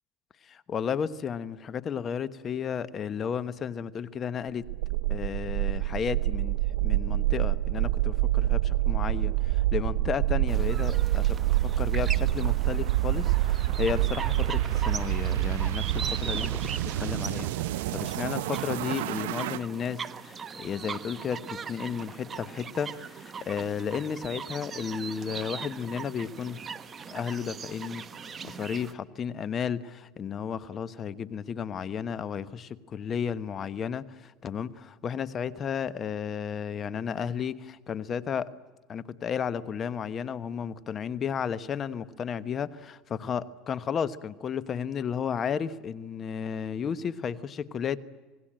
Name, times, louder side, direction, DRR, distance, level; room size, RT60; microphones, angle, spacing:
voice 1, 0.4-4.7 5.1-16.6 17.0-17.5 17.9-26.6 27.1-28.0 28.4-38.5 38.9-48.0, left 7 dB, 35° left, 15 dB, 1.1 m, -33 dB
sound 1, 4.6-19.6, right 15 dB, 85° right, 0.7 m, -27 dB
sound 2, 10.5-28.9, right 6 dB, 25° right, 1.2 m, -40 dB
27.0 x 19.5 x 8.8 m, 1.3 s
supercardioid pair, 115°, 0 cm